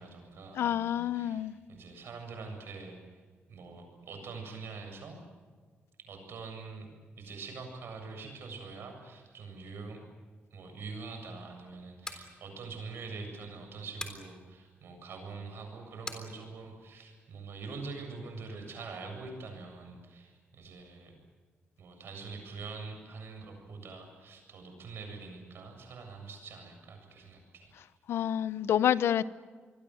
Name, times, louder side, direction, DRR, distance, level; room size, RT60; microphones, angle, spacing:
voice 1, 0.0-3.2 3.5-5.2 6.0-6.9 7.2-10.0 10.5-21.2 21.8-27.7, right 4 dB, 70° right, 7.6 m, -44 dB
voice 2, 0.5-1.6 28.1-29.2, left 10 dB, 80° left, 0.8 m, -28 dB
sound 1, 11.8-12.3 14.0-14.3 16.1-16.3, left 2 dB, 15° left, 3.6 m, -40 dB
27.5 x 22.0 x 7.9 m
cardioid pair, 125°, 4 cm